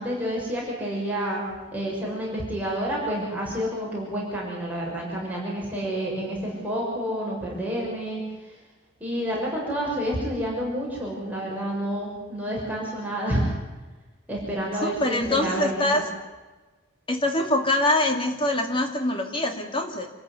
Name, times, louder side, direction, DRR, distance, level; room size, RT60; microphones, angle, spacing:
voice 1, 0.0-8.2 9.0-13.5 14.3-15.9, equal, 10° right, -4 dB, 6.5 m, -29 dB
voice 2, 14.8-16.1 17.1-20.1, left 1 dB, 25° left, 4 dB, 2.6 m, -24 dB
28.0 x 14.0 x 9.7 m, 1.2 s
head